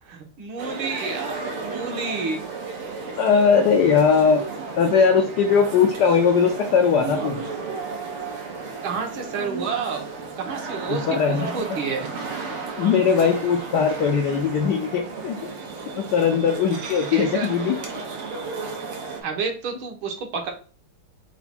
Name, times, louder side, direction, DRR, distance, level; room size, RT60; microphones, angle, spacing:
voice 1, 0.0-2.5 8.8-10.0 10.4-12.1 17.1-17.5 19.2-20.5, right 5 dB, 75° right, 3 dB, 1.7 m, -30 dB
sound 1, 0.6-19.2, right 4 dB, 90° right, 1.8 m, -33 dB
voice 2, 3.2-4.5 4.8-7.4 10.9-11.6 12.8-15.4 16.0-17.8, left 6 dB, 75° left, 2 dB, 0.9 m, -20 dB
4.5 x 2.2 x 4.2 m, 0.38 s
omnidirectional pair, 2.3 m